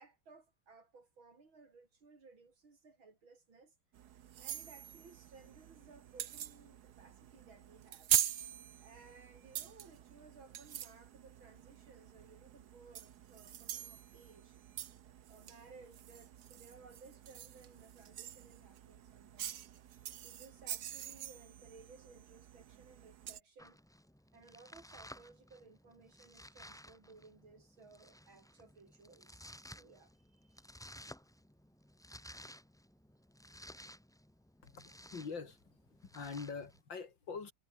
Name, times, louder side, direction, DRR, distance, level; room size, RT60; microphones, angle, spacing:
voice 1, 0.0-3.7 4.4-8.1 8.8-14.6 15.3-19.6 20.2-23.8 24.3-30.6, right 4 dB, 85° right, 5.1 m, -60 dB
sound 1, 3.9-23.4, right 11 dB, 60° right, 1.3 m, -43 dB
Domestic sounds home sounds, 23.6-36.8, equal, 5° left, 0.4 m, -56 dB
voice 2, 34.6-35.8 36.1-37.5, left 5 dB, 70° left, 3.5 m, -44 dB
omnidirectional pair, 2.1 m